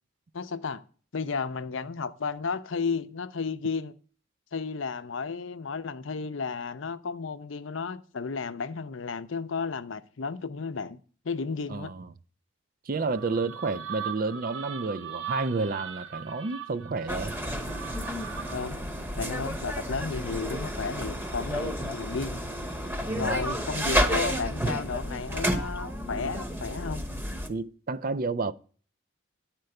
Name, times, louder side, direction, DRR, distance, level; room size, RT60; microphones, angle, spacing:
voice 1, 0.3-0.8 1.1-3.9 4.5-11.0 11.2-11.9 18.5-18.8 19.2-22.4 23.2-27.0, left 5 dB, 75° left, 0.6 m, -33 dB
voice 2, 11.7-12.1 12.9-17.3 23.0-23.4 27.5-28.5, right 3 dB, 45° right, 0.5 m, -30 dB
sound 1, 13.1-18.8, right 9 dB, 65° right, 0.9 m, -40 dB
sound 2, 17.1-27.5, equal, 10° right, 0.9 m, -31 dB
10.5 x 4.5 x 7.8 m
head